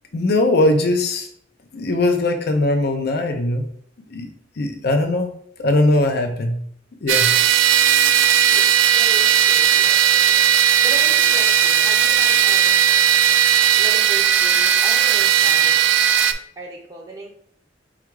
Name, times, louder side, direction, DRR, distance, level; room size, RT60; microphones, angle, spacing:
voice 1, 0.1-1.3 1.7-3.7 4.1-5.3 5.6-6.5 7.0-7.3, left 2 dB, 60° left, 5 dB, 0.5 m, -20 dB
sound 1, 7.1-16.3, right 9 dB, 90° right, 0.4 m, -16 dB
voice 2, 8.5-12.8 13.7-15.8 16.6-17.3, right 1 dB, 20° right, -2 dB, 0.6 m, -37 dB
4.5 x 2.4 x 4.5 m, 0.63 s
head